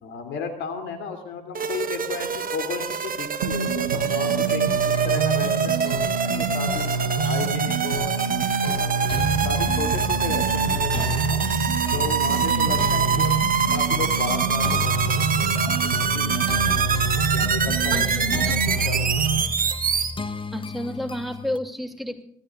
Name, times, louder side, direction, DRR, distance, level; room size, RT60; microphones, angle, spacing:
voice 1, 0.0-6.9 7.3-8.3 8.6-9.1 9.4-11.4 11.9-13.3 13.7-16.8 17.3-18.1 18.4-19.0 19.3-19.4, left 5 dB, 70° left, 6 dB, 3.2 m, -34 dB
sound 1, 1.6-20.1, right 7 dB, 45° right, 1.7 m, -25 dB
sound 2, 3.4-19.4, right 4 dB, 85° right, 1.3 m, -27 dB
sound 3, 4.1-21.6, left 2 dB, 25° left, 1.1 m, -33 dB
voice 2, 17.9-18.6 20.5-22.2, equal, ahead, 5 dB, 2.9 m, -31 dB
26.0 x 16.5 x 2.5 m, 0.63 s
hypercardioid pair, 45°, 21 cm